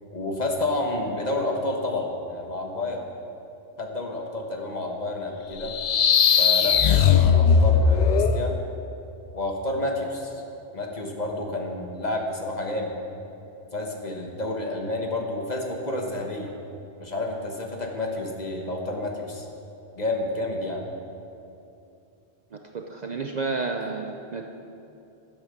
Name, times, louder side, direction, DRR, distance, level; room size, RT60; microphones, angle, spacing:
voice 1, 0.1-3.0 3.8-5.7 6.4-8.6 9.3-10.3 10.7-12.9 13.7-16.5 17.0-19.5 20.0-20.8, left 2 dB, 40° left, 1 dB, 1.3 m, -30 dB
sound 1, 5.6-8.4, left 6 dB, 60° left, 0.5 m, -18 dB
voice 2, 22.5-24.5, right 3 dB, 45° right, 3 dB, 0.6 m, -31 dB
11.0 x 8.3 x 6.6 m, 2.7 s
omnidirectional pair, 1.1 m